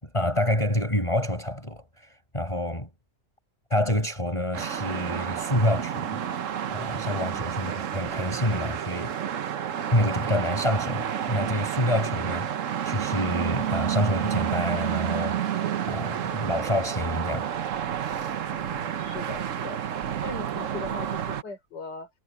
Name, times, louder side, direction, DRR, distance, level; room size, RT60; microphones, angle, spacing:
voice 1, 0.0-2.9 3.7-6.2 6.7-9.2 9.9-17.5, left 1 dB, 15° left, 6.3 m, -27 dB
sound 1, 4.5-21.4, right 9 dB, 55° right, 1.2 m, -30 dB
voice 2, 7.1-7.4 18.6-19.8 20.2-22.1, left 3 dB, 85° left, 4.7 m, -39 dB
omnidirectional pair, 1.8 m